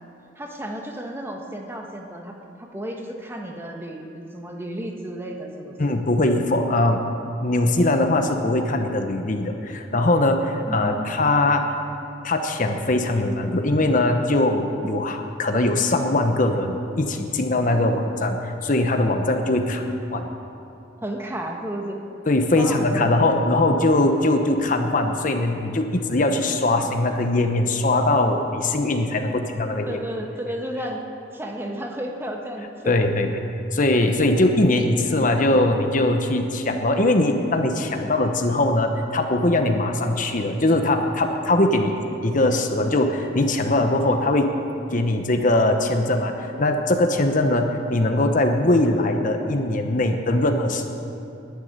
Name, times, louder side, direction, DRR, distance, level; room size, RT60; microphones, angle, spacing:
voice 1, 0.4-5.8 10.7-11.2 19.5-19.9 21.0-22.0 22.6-23.4 29.2-29.4 29.9-31.0 31.3-33.0, right 1 dB, 15° right, 1 dB, 1.3 m, -33 dB
voice 2, 5.8-7.0 7.4-11.6 12.2-20.2 22.3-30.0 32.9-33.4 33.7-41.9 42.2-44.5 44.9-50.9, left 2 dB, 45° left, 5 dB, 0.9 m, -21 dB
11.5 x 9.6 x 9.6 m, 2.8 s
head